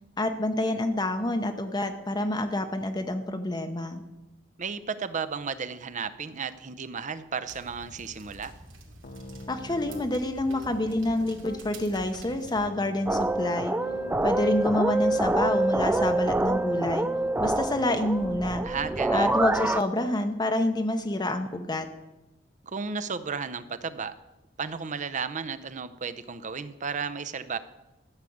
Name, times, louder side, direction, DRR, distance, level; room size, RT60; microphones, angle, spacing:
voice 1, 0.2-4.0 9.5-13.7 14.2-17.1 17.4-18.6 19.1-21.9, left 1 dB, 20° left, 6 dB, 0.8 m, -28 dB
voice 2, 4.6-8.5 18.6-19.3 22.6-24.1 24.6-27.6, right 5 dB, 40° right, 12 dB, 0.7 m, -34 dB
sound 1, 7.5-12.7, right 2 dB, 85° right, 2.6 m, -48 dB
Piano, 9.0-10.1 10.5-11.6 12.3-15.5, left 2 dB, 50° left, 0.9 m, -43 dB
sound 2, 13.1-19.8, right 2 dB, 10° right, 0.3 m, -26 dB
13.0 x 6.5 x 8.6 m, 1.0 s
head